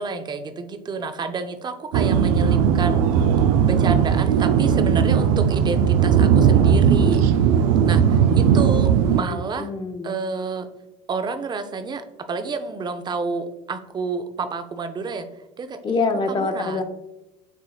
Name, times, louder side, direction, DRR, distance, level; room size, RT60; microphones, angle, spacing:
voice 1, 0.0-3.0 3.6-7.5 7.8-9.7 10.0-10.7 11.1-12.0 12.3-15.3 15.6-15.8 16.3-16.8, right 4 dB, 25° right, 9 dB, 0.5 m, -29 dB
sound 1, 1.9-9.2, right 7 dB, 80° right, 0.4 m, -17 dB
voice 2, 9.3-10.2 15.8-16.8, left 3 dB, 25° left, 7 dB, 0.6 m, -25 dB
6.7 x 3.0 x 2.3 m, 0.95 s
supercardioid pair, 100°, 17 cm